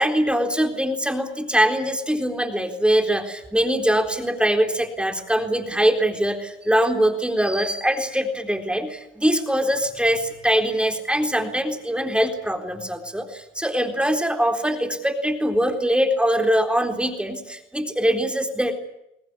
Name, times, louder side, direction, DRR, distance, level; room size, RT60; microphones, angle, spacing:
voice 1, 0.0-18.7, equal, 5° right, 5 dB, 3.9 m, -22 dB
23.0 x 19.0 x 9.8 m, 0.82 s
cardioid pair, 90°, 20 cm